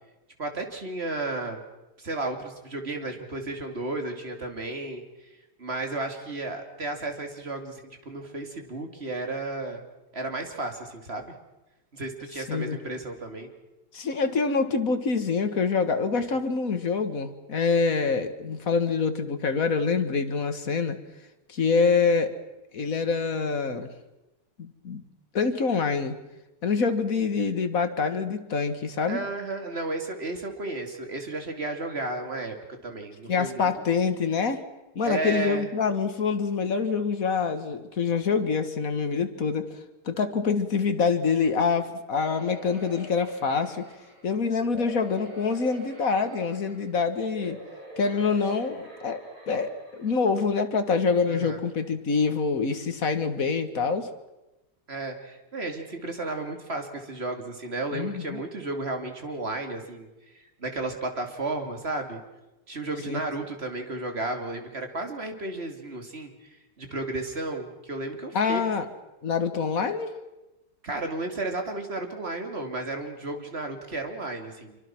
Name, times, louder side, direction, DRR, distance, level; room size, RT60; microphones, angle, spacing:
voice 1, 0.4-1.6 2.0-5.3 5.6-9.8 10.1-11.3 11.9-13.5 29.1-32.5 32.8-33.7 35.0-35.7 47.4-47.5 51.3-51.6 54.9-60.1 60.6-62.2 62.7-66.3 66.8-68.7 70.8-74.8, right 2 dB, 30° right, 4 dB, 3.0 m, -33 dB
voice 2, 13.9-21.0 21.5-22.3 22.7-23.9 24.6-25.0 25.3-26.2 26.6-29.2 33.3-34.6 35.0-39.7 40.1-43.9 44.2-47.6 48.0-54.1 57.9-58.4 63.1-63.2 68.3-68.9 69.2-70.2, left 5 dB, 45° left, 8 dB, 1.9 m, -26 dB
sound 1, 42.1-44.3 44.7-46.9 47.3-50.2 50.7-50.8 51.1-51.2, equal, 85° right, 6.4 m, -45 dB
26.0 x 24.5 x 6.1 m, 1.0 s
omnidirectional pair, 2.3 m